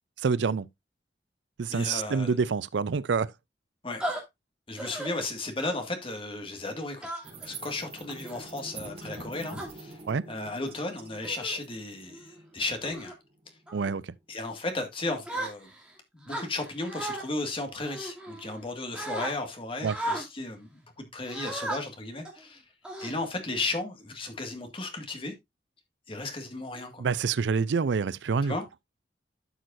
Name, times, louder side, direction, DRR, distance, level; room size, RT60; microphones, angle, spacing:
voice 1, 0.2-0.7 1.6-3.3 10.1-10.2 13.7-14.0 19.8-19.9 27.0-28.5, right 5 dB, 80° right, 0.5 m, -27 dB
voice 2, 1.7-2.4 3.8-4.2 4.7-7.1 7.4-10.0 10.3-13.1 14.3-15.7 16.1-22.6 23.0-25.3 26.1-27.1 28.4-28.6, left 2 dB, 30° left, 1.9 m, -35 dB
sound 1, 4.0-4.2 4.8-5.1 5.6-5.9 7.0-7.5 8.1-8.4 9.1-9.7 10.5-10.7 11.2-11.6 12.1-12.3 12.8-13.1 13.7-13.9 15.3-15.9 16.3-17.2 17.9-18.6 18.9-19.3 19.9-20.3 21.3-21.8 22.3-22.4 22.8-23.5, right 1 dB, 5° right, 2.5 m, -36 dB
sound 2, 7.2-13.8, right 2 dB, 35° right, 3.8 m, -45 dB
12.0 x 6.3 x 2.6 m
head